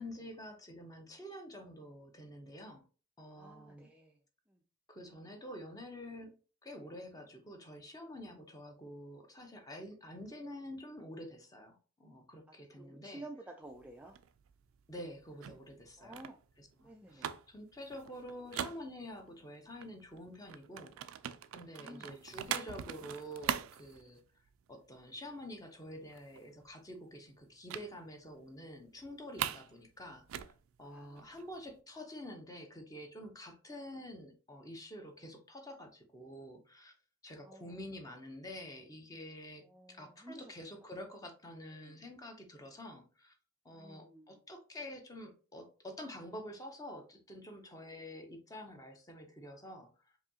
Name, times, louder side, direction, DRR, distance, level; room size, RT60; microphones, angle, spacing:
voice 1, 0.0-2.8 3.2-3.9 4.9-6.3 6.6-13.3 14.9-16.2 16.6-21.0 21.5-24.2 24.7-30.5 30.8-36.9 37.2-43.3 43.6-49.9, left 1 dB, 20° left, 0.7 m, -48 dB
voice 2, 3.3-4.2 4.5-4.6 12.5-14.1 16.0-16.4 16.8-17.4 21.8-22.2 30.8-31.5 37.4-38.0 39.6-40.5 41.7-42.0 43.7-44.4, right 2 dB, 5° right, 0.3 m, -53 dB
sound 1, 13.7-19.4 19.8-24.7 25.0-25.3 25.5-25.6 26.0-26.7 27.7-27.9 28.3-28.4 28.7-29.7 30.0-31.7, right 9 dB, 90° right, 0.3 m, -42 dB
4.8 x 2.7 x 2.8 m
head